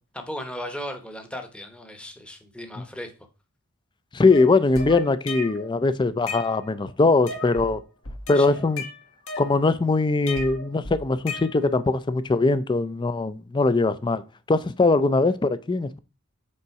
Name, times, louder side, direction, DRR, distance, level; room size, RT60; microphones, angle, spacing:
voice 1, 0.1-3.1 8.3-8.5, equal, 5° left, 0.8 m, -36 dB
voice 2, 4.1-7.8 8.3-8.8 9.4-14.2 14.5-16.0, left 3 dB, 20° left, 0.4 m, -21 dB
sound 1, 4.3-5.7 6.1-6.9 7.3-7.7 8.0-9.8 10.3-11.9, left 3 dB, 65° left, 1.4 m, -36 dB
5.4 x 4.0 x 4.6 m
head